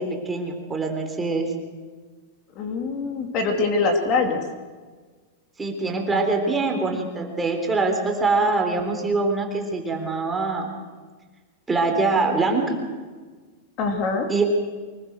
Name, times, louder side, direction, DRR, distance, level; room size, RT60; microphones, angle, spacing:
voice 1, 0.0-1.5 5.6-10.7 11.7-12.8 14.3-14.4, right 3 dB, 10° right, 2 dB, 3.7 m, -23 dB
voice 2, 2.5-4.4 13.8-14.3, left 3 dB, 40° left, 4 dB, 2.9 m, -23 dB
24.5 x 20.5 x 6.5 m, 1.4 s
supercardioid pair, 150°, 0 cm